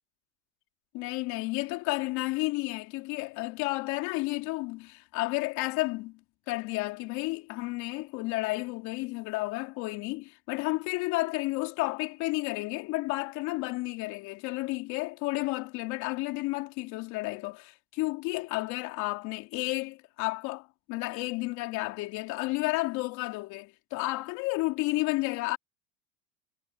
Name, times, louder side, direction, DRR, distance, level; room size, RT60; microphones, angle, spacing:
voice 1, 0.9-6.2 6.5-25.6, left 22 dB, 50° left, 3.2 m, -32 dB
supercardioid pair, 125°, 36 cm